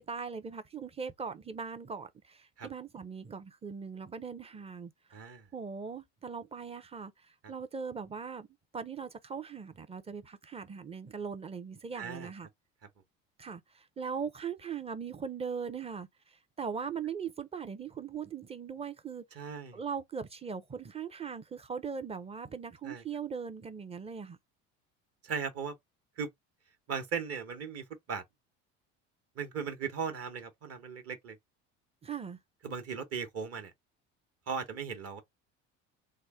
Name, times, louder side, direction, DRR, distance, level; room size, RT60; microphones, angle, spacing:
voice 1, 0.0-5.2 5.5-7.1 7.5-8.5 8.7-12.5 13.4-19.4 19.7-24.4 32.0-32.4, right 6 dB, 15° right, 0.5 m, -40 dB
voice 2, 5.1-5.5 11.9-12.3 19.3-19.8 22.8-23.0 25.2-25.7 26.2-26.3 26.9-28.2 29.4-31.4 32.6-33.7 34.5-35.2, right 6 dB, 40° right, 1.0 m, -37 dB
3.0 x 2.1 x 3.5 m
hypercardioid pair, 75°, 36 cm